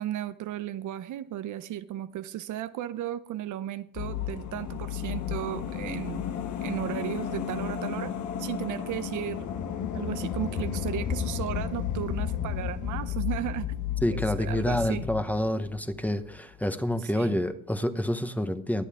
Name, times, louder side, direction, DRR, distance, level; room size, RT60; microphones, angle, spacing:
voice 1, 0.0-6.2 6.6-8.1 8.4-9.5 9.9-13.8 14.1-15.0 17.1-17.3, right 12 dB, 80° right, 0.8 m, -35 dB
sound 1, 3.9-16.4 16.6-16.7, left 9 dB, 75° left, 1.2 m, -33 dB
voice 2, 14.0-18.8, left 1 dB, 5° left, 1.1 m, -28 dB
21.5 x 8.1 x 3.7 m
cardioid pair, 90°, 30 cm